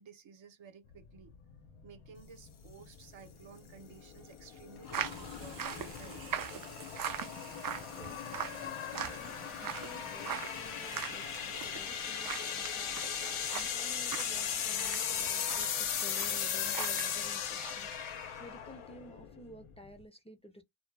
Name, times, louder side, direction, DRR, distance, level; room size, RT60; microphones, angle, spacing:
voice 1, 0.0-1.3 1.8-6.2, right 6 dB, 70° right, 0.8 m, -54 dB
sound 1, 0.9-20.0, left 8 dB, 90° left, 0.7 m, -38 dB
Sink (filling or washing), 2.2-14.5, left 8 dB, 50° left, 0.7 m, -51 dB
sound 2, 4.9-17.1 17.4-17.7, right 8 dB, 45° right, 0.4 m, -42 dB
voice 2, 7.9-13.0 13.5-17.9 18.4-20.6, equal, 15° left, 0.5 m, -53 dB
2.1 x 2.1 x 3.2 m
cardioid pair, 70°, 49 cm